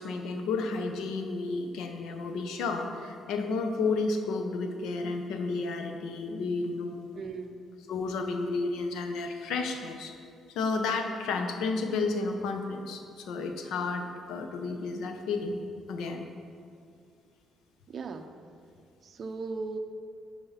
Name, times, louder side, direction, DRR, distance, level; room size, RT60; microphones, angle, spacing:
voice 1, 0.0-7.1 7.9-10.1 10.5-15.6 15.9-16.3, left 3 dB, 90° left, 5 dB, 0.9 m, -32 dB
voice 2, 7.1-7.6 17.9-18.3 19.0-19.8, right 4 dB, 45° right, 6 dB, 0.6 m, -37 dB
11.0 x 4.8 x 5.7 m, 2.3 s
cardioid pair, 130°, 0 cm